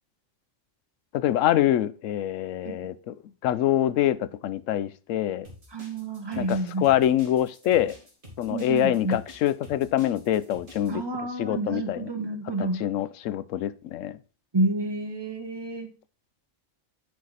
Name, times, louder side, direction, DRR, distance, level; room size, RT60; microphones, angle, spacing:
voice 1, 1.1-3.1 3.4-5.5 6.4-8.0 8.4-11.0 11.4-12.1 12.8-14.2, left 12 dB, 90° left, 15 dB, 1.0 m, -25 dB
sound 1, 5.4-10.9, left 1 dB, 45° right, 2.4 m, -48 dB
voice 2, 5.7-6.9 8.5-9.2 10.9-12.8 14.5-15.9, right 2 dB, 20° right, 5 dB, 1.1 m, -29 dB
9.4 x 4.5 x 4.1 m, 0.35 s
omnidirectional pair, 1.3 m